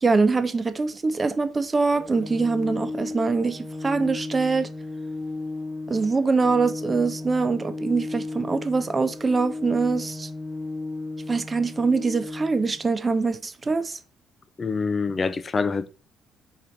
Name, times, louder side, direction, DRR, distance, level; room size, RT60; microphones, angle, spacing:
voice 1, 0.0-4.7 5.9-10.3 11.3-14.0, right 4 dB, 30° right, 0.5 m, -23 dB
Organ, 1.9-12.8, left 2 dB, 5° left, 1.3 m, -35 dB
voice 2, 14.6-15.9, left 4 dB, 35° left, 0.5 m, -25 dB
4.0 x 3.1 x 3.9 m
figure-of-eight pair, 45°, 0 cm